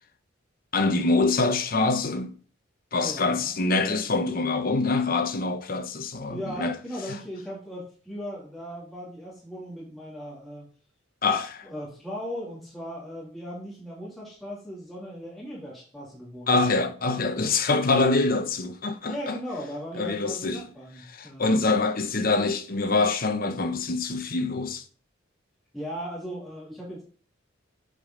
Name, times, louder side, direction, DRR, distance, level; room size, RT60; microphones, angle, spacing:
voice 1, 0.7-2.3 2.9-6.7 11.2-11.7 16.5-19.4 20.0-20.6 21.1-24.8, left 3 dB, 45° left, 0.9 m, -25 dB
voice 2, 3.0-3.6 6.3-10.7 11.6-16.5 19.1-21.8 25.7-27.0, equal, ahead, 2.7 m, -38 dB
8.9 x 5.1 x 3.9 m
head